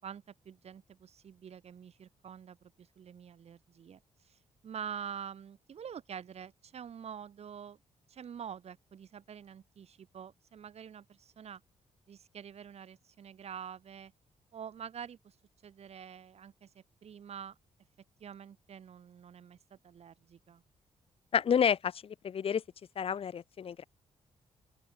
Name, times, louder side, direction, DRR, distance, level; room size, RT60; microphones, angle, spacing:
voice 1, 0.0-7.8 8.1-11.6 12.1-14.1 14.5-15.4 15.6-17.6 18.2-20.6, right 8 dB, 55° right, 6.1 m, -46 dB
voice 2, 21.3-22.6 23.0-23.8, left 7 dB, 50° left, 1.3 m, -30 dB
open air
cardioid pair, 130°, 13 cm